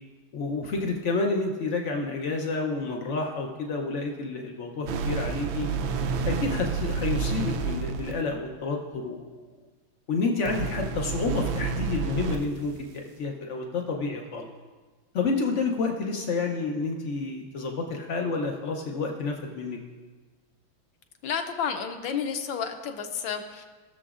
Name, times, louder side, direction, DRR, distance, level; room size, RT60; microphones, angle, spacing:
voice 1, 0.3-5.7 6.2-9.6 10.1-14.5 15.1-19.8, left 3 dB, 90° left, 1 dB, 0.6 m, -29 dB
sound 1, 4.8-8.2 10.5-12.4, right 5 dB, 75° right, 1.3 m, -29 dB
voice 2, 21.2-23.6, left 7 dB, 70° left, 5 dB, 1.4 m, -31 dB
18.0 x 6.8 x 2.4 m, 1.3 s
omnidirectional pair, 2.3 m